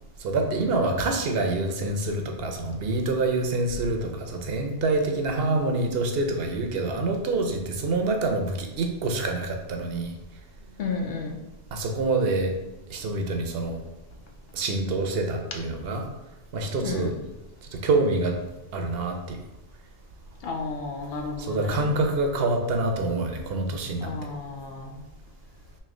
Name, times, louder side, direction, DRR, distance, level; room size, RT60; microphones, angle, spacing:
voice 1, 0.2-10.1 11.7-12.5 12.9-13.8 14.5-16.0 16.5-17.1 17.8-18.4 18.7-19.4 21.5-24.1, right 2 dB, 70° right, 4 dB, 0.8 m, -26 dB
voice 2, 10.8-11.4 16.8-17.1 20.4-21.9 24.0-25.0, left 4 dB, 75° left, 2 dB, 0.9 m, -32 dB
3.2 x 2.8 x 3.6 m, 1.0 s
omnidirectional pair, 1.1 m